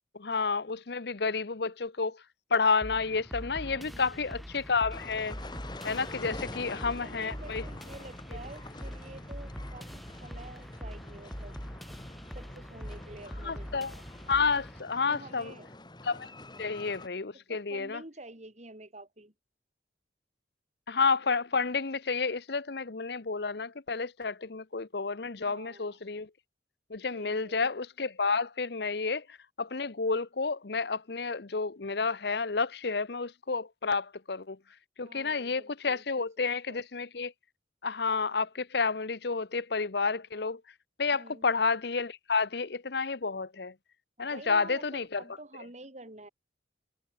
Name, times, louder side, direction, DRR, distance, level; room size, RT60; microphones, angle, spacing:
voice 1, 0.1-2.2 2.5-5.3 5.8-7.6 13.4-13.9 14.3-15.5 16.0-16.3 16.6-18.0 20.9-26.3 26.9-34.6 35.0-37.3 37.8-40.6 41.0-43.7 44.2-45.2, left 4 dB, 60° left, 0.9 m, -30 dB
sound 1, 2.8-14.8, equal, ahead, 1.0 m, -43 dB
voice 2, 3.7-4.2 6.4-11.6 12.3-13.9 15.0-15.7 17.3-19.3 25.3-26.0 27.1-27.7 35.0-36.8 41.1-41.5 44.2-46.3, right 2 dB, 40° right, 3.3 m, -49 dB
sound 2, 4.9-17.1, left 2 dB, 25° left, 2.6 m, -46 dB
head